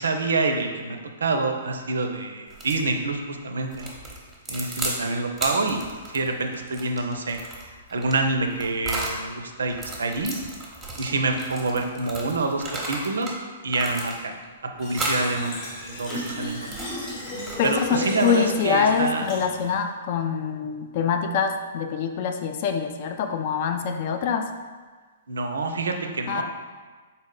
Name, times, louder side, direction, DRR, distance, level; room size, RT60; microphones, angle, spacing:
voice 1, 0.0-3.9 4.5-5.8 6.1-7.4 7.9-10.4 11.0-13.3 13.6-14.3 14.8-16.7 17.6-19.3 25.3-26.4, right 3 dB, 80° right, 4 dB, 0.4 m, -27 dB
sound 1, 2.5-2.8 3.7-5.0 5.3-9.2 9.7-13.4 13.7-14.4 14.9-15.3 15.8-17.9, right 2 dB, 10° right, 0.7 m, -34 dB
Fill (with liquid), 14.8-19.8, left 1 dB, 35° left, 0.8 m, -35 dB
voice 2, 17.6-24.5 26.3-26.4, left 6 dB, 50° left, 6 dB, 0.3 m, -25 dB
3.9 x 2.1 x 3.7 m, 1.4 s
hypercardioid pair, 120°, 0 cm